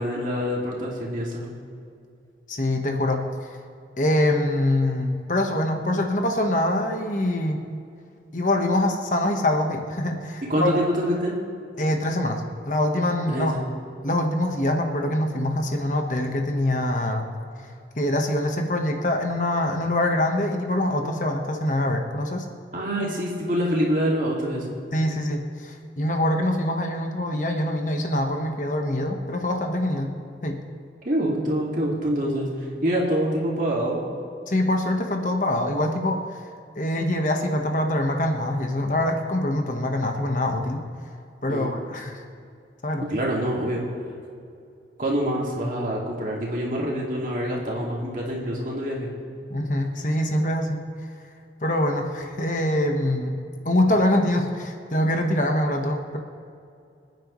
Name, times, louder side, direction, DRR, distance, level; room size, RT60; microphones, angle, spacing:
voice 1, 0.0-1.5 10.5-11.4 13.3-13.7 22.7-24.7 31.0-32.5 32.8-34.0 41.5-41.7 43.1-43.8 45.0-49.1, equal, 50° right, -3 dB, 2.3 m, -25 dB
voice 2, 2.5-3.2 4.0-7.6 8.3-10.7 11.8-13.5 14.0-17.3 18.0-22.4 24.9-30.1 30.4-30.6 34.5-36.2 36.8-40.8 41.4-42.2 42.8-43.1 49.5-50.8 51.6-53.4 53.6-56.2, left 1 dB, 45° left, 3 dB, 1.3 m, -24 dB
26.0 x 9.2 x 3.2 m, 2.5 s
head